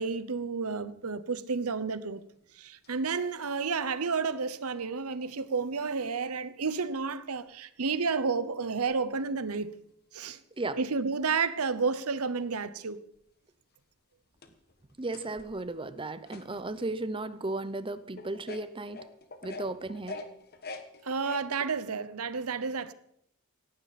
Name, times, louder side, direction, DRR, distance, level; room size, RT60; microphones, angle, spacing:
voice 1, 0.0-2.2 2.5-9.7 10.1-10.4 10.8-13.0 21.0-22.9, right 4 dB, 90° right, 0.9 m, -31 dB
sound 1, 2.8-4.2 4.8-4.9 6.8-6.9 8.0-8.1 8.8-9.0 12.2-12.3 13.2-13.3 13.7-13.8 14.2-16.9 17.4-17.5 18.2-21.7, left 3 dB, 45° left, 1.4 m, -46 dB
voice 2, 15.0-19.0 19.4-20.2, right 2 dB, 25° right, 0.7 m, -35 dB
17.5 x 15.5 x 4.2 m
head